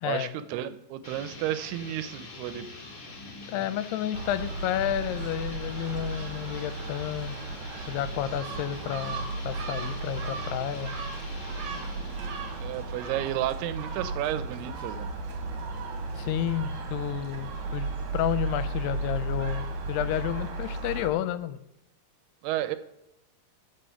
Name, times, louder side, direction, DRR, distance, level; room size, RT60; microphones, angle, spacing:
voice 1, 0.0-2.7 12.6-15.1 22.4-22.8, right 13 dB, 80° right, 13 dB, 2.5 m, -32 dB
sound 1, 1.0-13.5, left 3 dB, 45° left, 1.8 m, -45 dB
voice 2, 3.5-7.4 7.9-10.9 16.1-21.6, left 12 dB, 85° left, 14 dB, 2.6 m, -31 dB
Gull seagull, 4.1-21.1, right 3 dB, 55° right, 2.5 m, -34 dB
14.0 x 5.7 x 5.6 m, 0.81 s
omnidirectional pair, 4.7 m